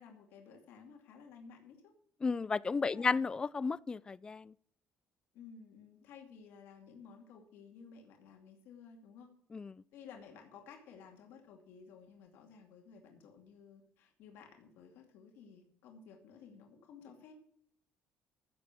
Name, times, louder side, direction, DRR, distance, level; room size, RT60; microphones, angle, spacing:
voice 1, 0.0-1.9 2.8-3.1 5.3-9.3 9.9-17.3, left 6 dB, 75° left, 2.6 m, -55 dB
voice 2, 2.2-4.5 9.5-9.7, left 4 dB, 20° left, 0.4 m, -33 dB
15.0 x 7.0 x 6.1 m
cardioid pair, 125°, 4 cm